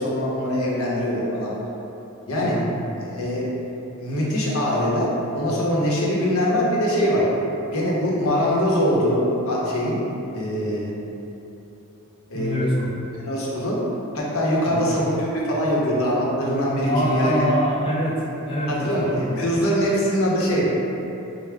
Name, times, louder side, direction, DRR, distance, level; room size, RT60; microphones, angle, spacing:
voice 1, 0.0-1.5 2.3-2.6 3.1-3.5 4.0-5.1 5.3-7.3 7.7-10.0 10.3-10.9 12.3-12.5 13.3-13.8 14.1-17.3 18.7-19.1 19.4-20.8, equal, 80° left, -5 dB, 0.8 m, -22 dB
voice 2, 2.4-2.8 12.3-12.9 14.7-14.9 16.9-19.4, equal, 25° left, -6 dB, 0.4 m, -25 dB
4.7 x 2.1 x 3.4 m, 2.9 s
head